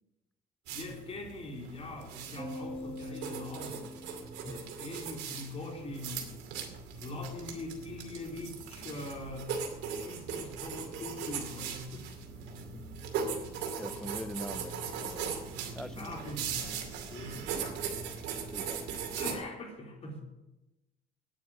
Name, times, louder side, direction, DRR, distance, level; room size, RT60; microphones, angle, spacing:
voice 1, 0.7-3.9 4.4-6.3 7.0-9.5 9.9-12.1 12.3-12.6 16.0-18.0 19.2-20.2, left 2 dB, 35° left, 3.9 m, -42 dB
sound 1, 0.7-19.4, right 6 dB, 90° right, 2.5 m, -39 dB
sound 2, 2.4-4.9, left 1 dB, 20° right, 1.5 m, -44 dB
voice 2, 13.8-15.4 15.7-16.2 18.5-19.0, left 1 dB, 5° left, 0.5 m, -43 dB
9.7 x 9.2 x 8.7 m
cardioid pair, 110°, 17 cm